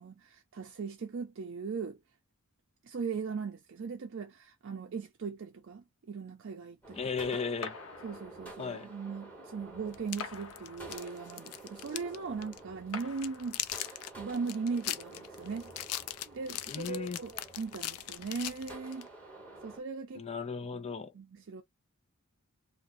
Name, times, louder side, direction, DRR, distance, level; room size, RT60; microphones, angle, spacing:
voice 1, 0.0-2.0 2.8-7.0 7.3-7.4 8.0-15.7 16.3-17.3 17.6-19.1 19.6-20.3 21.1-21.6, right 5 dB, 55° right, 0.4 m, -39 dB
sound 1, 6.8-19.8, right 2 dB, 5° left, 1.4 m, -50 dB
voice 2, 7.0-7.8 8.6-8.9 16.7-17.2 20.1-21.1, left 5 dB, 30° left, 0.4 m, -35 dB
sound 2, 7.6-8.7 10.2-11.3 12.9-14.0, left 5 dB, 60° left, 0.8 m, -45 dB
sound 3, 9.9-12.2 12.4-12.6 13.0-19.1, left 13 dB, 90° left, 0.4 m, -39 dB
2.6 x 2.1 x 3.9 m
head